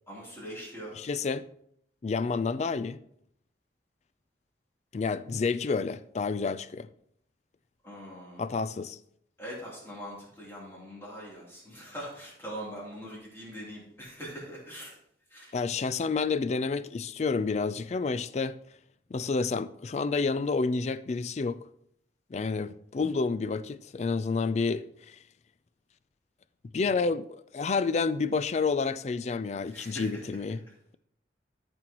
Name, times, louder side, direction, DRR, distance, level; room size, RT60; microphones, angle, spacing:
voice 1, 0.1-1.0 7.8-8.5 9.4-15.0 15.3-15.6 29.7-30.4, equal, 15° left, 3.1 m, -42 dB
voice 2, 1.0-1.5 2.0-3.0 4.9-6.9 8.4-9.0 15.5-18.6 19.1-21.7 22.3-25.2 26.7-30.6, left 4 dB, 40° left, 0.3 m, -29 dB
13.0 x 6.1 x 3.0 m
head